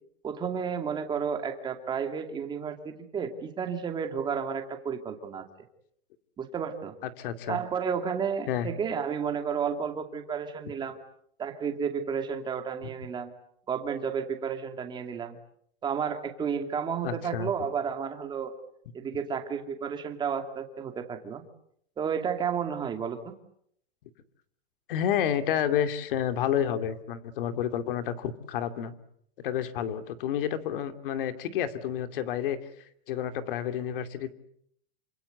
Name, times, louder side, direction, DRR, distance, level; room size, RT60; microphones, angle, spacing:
voice 1, 0.2-5.5 6.4-6.9 7.5-11.0 11.4-13.3 13.7-15.4 15.8-18.5 18.9-21.4 22.0-23.4, right 7 dB, 15° right, 6 dB, 2.5 m, -32 dB
voice 2, 7.2-7.6 8.5-8.7 17.0-17.5 24.9-28.9 29.4-32.6 33.1-34.3, left 9 dB, 55° left, 9 dB, 2.6 m, -30 dB
28.0 x 26.0 x 8.1 m, 0.70 s
supercardioid pair, 165°, 32 cm